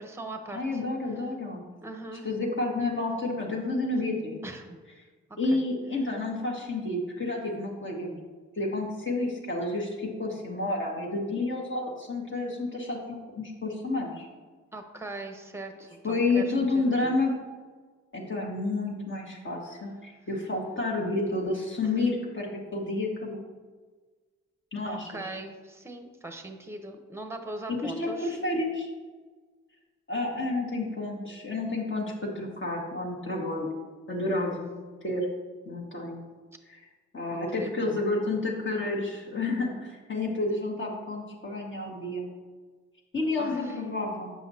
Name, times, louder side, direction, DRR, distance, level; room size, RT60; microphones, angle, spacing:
voice 1, 0.0-0.8 1.1-1.2 1.8-2.3 3.9-4.0 4.4-4.8 5.5-5.6 14.7-17.2 24.8-28.4 34.1-34.6 37.5-38.0 43.4-43.8, right 2 dB, 10° right, 5 dB, 0.9 m, -40 dB
voice 2, 0.5-1.6 2.2-4.4 5.4-8.2 8.6-14.3 16.0-17.3 18.1-23.4 24.7-25.1 27.8-28.9 30.1-33.7 34.1-34.7 35.0-35.3 35.7-36.2 37.1-42.3 43.1-44.3, left 2 dB, 40° left, -2 dB, 1.8 m, -30 dB
7.6 x 5.6 x 2.8 m, 1.4 s
supercardioid pair, 45°, 32 cm